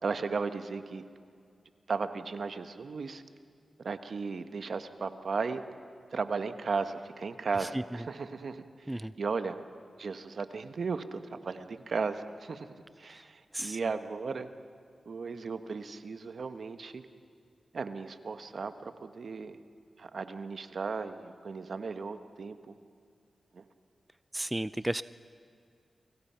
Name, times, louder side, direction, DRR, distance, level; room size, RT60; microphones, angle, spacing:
voice 1, 0.0-1.0 1.9-3.2 3.8-5.6 6.1-9.6 10.0-14.5 15.0-17.0 17.7-19.6 20.0-22.7 23.5-23.6, right 4 dB, 70° right, 9 dB, 1.3 m, -36 dB
voice 2, 24.3-25.0, right 1 dB, 15° right, 15 dB, 0.5 m, -34 dB
29.5 x 25.0 x 5.8 m, 2.2 s
cardioid pair, 55°, 0 cm